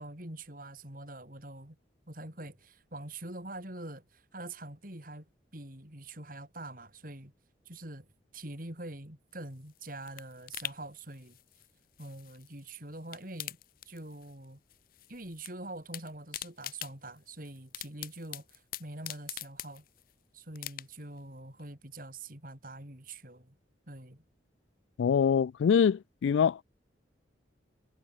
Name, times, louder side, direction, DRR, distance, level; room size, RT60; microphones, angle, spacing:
voice 1, 0.0-1.8 2.1-5.3 5.5-7.3 7.6-8.1 8.3-11.4 12.0-13.6 13.8-14.6 15.1-19.8 20.3-23.5 23.9-24.2, right 2 dB, 45° right, 5.0 m, -44 dB
sound 1, 9.4-12.6 12.9-14.4 14.7-15.5 15.8-20.1 20.5-21.2 21.6-21.7, left 13 dB, 50° left, 0.7 m, -44 dB
voice 2, 25.0-26.6, left 7 dB, 80° left, 0.3 m, -24 dB
head